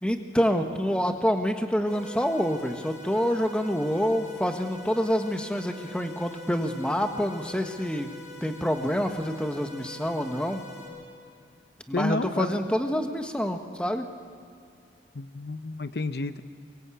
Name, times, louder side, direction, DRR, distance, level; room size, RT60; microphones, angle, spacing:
voice 1, 0.0-8.1 8.4-10.6 11.9-14.1, equal, 5° left, 5 dB, 1.4 m, -27 dB
sound 1, 1.9-10.9, left 2 dB, 40° left, 7.9 m, -45 dB
voice 2, 11.9-12.6 15.2-16.4, left 2 dB, 60° left, 11 dB, 0.7 m, -30 dB
24.0 x 22.0 x 8.5 m, 2.4 s
head